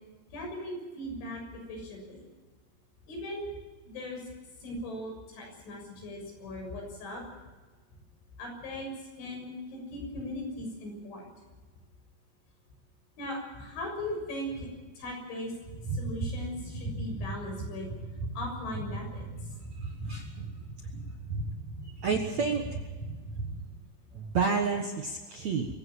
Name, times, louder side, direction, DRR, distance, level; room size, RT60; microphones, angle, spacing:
voice 1, 0.3-2.2 3.1-3.5 3.9-4.2 4.6-7.2 8.4-8.9 9.2-11.2 13.2-14.7 15.0-15.5 15.9-17.9 18.4-19.3, left 1 dB, 80° left, 2 dB, 9.1 m, -38 dB
sound 1, 15.7-23.7, right 2 dB, 45° right, 6.7 m, -38 dB
voice 2, 19.8-20.5 21.8-22.8 24.1-25.7, right 5 dB, 60° right, 3 dB, 1.9 m, -30 dB
24.5 x 16.0 x 7.5 m, 1.3 s
omnidirectional pair, 5.4 m